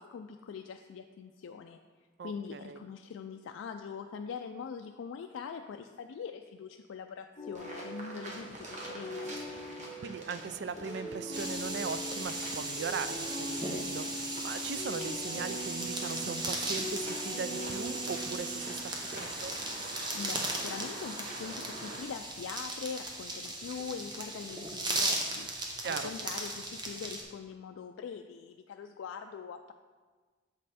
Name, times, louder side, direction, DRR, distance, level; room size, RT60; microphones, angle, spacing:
voice 1, 0.0-1.8 2.2-9.3 20.1-25.5 25.8-29.7, left 6 dB, 85° left, 5 dB, 0.3 m, -42 dB
voice 2, 2.2-2.8 10.0-19.6 25.8-26.1, right 5 dB, 60° right, 12 dB, 0.3 m, -39 dB
sound 1, 7.4-19.1, equal, 30° left, 1.2 m, -42 dB
sound 2, 7.5-22.0, right 1 dB, 35° right, 1.1 m, -46 dB
scrabble and soft sand pour, 11.3-27.2, right 2 dB, 20° right, 0.7 m, -37 dB
7.3 x 5.3 x 4.2 m, 1.4 s
head